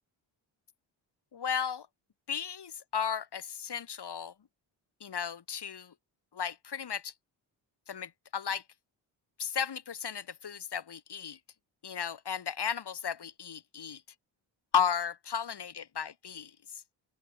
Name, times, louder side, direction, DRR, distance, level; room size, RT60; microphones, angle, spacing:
voice 1, 1.3-1.9 2.3-4.3 5.0-5.9 6.3-7.1 7.9-8.6 9.4-11.4 11.8-14.0 14.7-16.8, left 7 dB, 50° left, 2.6 m, -34 dB
open air
supercardioid pair, 50°, 49 cm